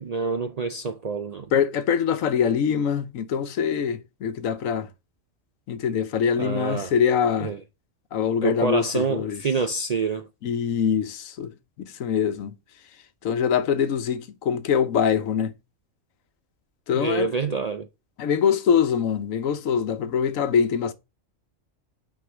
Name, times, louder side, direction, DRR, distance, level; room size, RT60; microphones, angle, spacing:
voice 1, 0.0-1.5 6.4-6.9 7.4-7.6 8.4-10.3 16.9-17.9, right 4 dB, 60° right, 0.4 m, -27 dB
voice 2, 1.5-4.9 5.7-7.5 8.1-9.4 10.4-11.5 11.8-12.5 13.2-15.5 16.9-17.3 18.2-20.9, left 7 dB, 90° left, 1.2 m, -23 dB
6.4 x 4.7 x 5.9 m
omnidirectional pair, 1.3 m